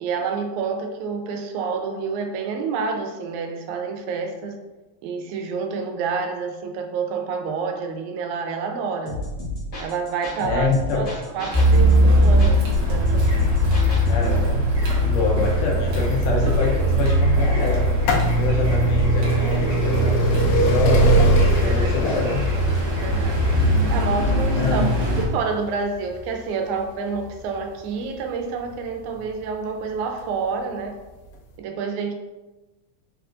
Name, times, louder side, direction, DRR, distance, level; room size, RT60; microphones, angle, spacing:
voice 1, 0.0-4.6 5.0-9.2 9.8-13.1 21.6-21.9 23.0-23.4 23.9-24.8 25.2-31.0 31.6-32.1, right 5 dB, 85° right, 4 dB, 2.0 m, -28 dB
sound 1, 9.1-14.4, left 1 dB, 50° left, 1.4 m, -31 dB
voice 2, 10.4-11.1 14.1-14.7 15.0-18.0 18.4-22.4 24.6-24.9, left 3 dB, 75° left, -1 dB, 1.6 m, -26 dB
Car, 11.5-25.2, equal, 65° right, 1.1 m, -20 dB
sound 2, 17.7-29.4 30.2-30.3 31.3-31.4 31.6-31.7, right 2 dB, 90° left, 2.0 m, -23 dB
4.9 x 3.5 x 2.4 m, 1.1 s
omnidirectional pair, 3.3 m